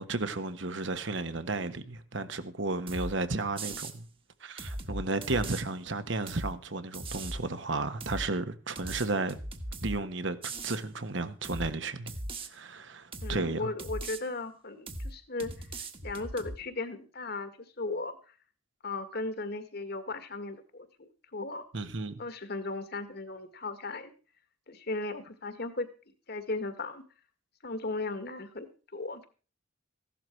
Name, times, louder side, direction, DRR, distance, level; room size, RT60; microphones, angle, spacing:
voice 1, 0.0-4.0 4.4-9.4 9.8-12.1 12.5-13.7 21.7-22.1, right 3 dB, 65° right, 1.4 m, -33 dB
sound 1, 2.9-3.1 3.6-4.0 4.6-5.6 6.3-6.5 6.9-7.4 8.0-8.3 8.8-10.0 10.4-10.8 11.4-11.7 12.1-12.5 13.1-13.4 13.8-14.2 14.9-15.1 15.4-16.6, right 2 dB, 25° right, 1.5 m, -38 dB
voice 2, 13.2-18.2 18.8-21.6 22.2-24.1 24.7-25.9 26.3-27.0 27.6-28.7 28.9-29.3, left 2 dB, 50° left, 1.9 m, -36 dB
15.5 x 12.0 x 4.6 m
head